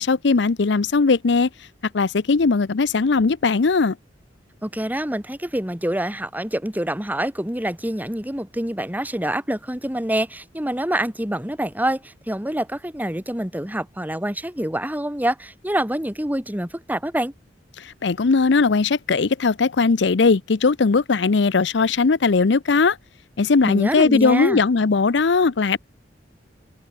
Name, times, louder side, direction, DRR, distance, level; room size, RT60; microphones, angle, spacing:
voice 1, 0.0-1.5 1.9-4.0 17.8-23.0 23.4-25.8, left 4 dB, 70° left, 0.6 m, -19 dB
voice 2, 4.6-17.3 23.6-24.6, right 1 dB, 10° right, 2.8 m, -26 dB
head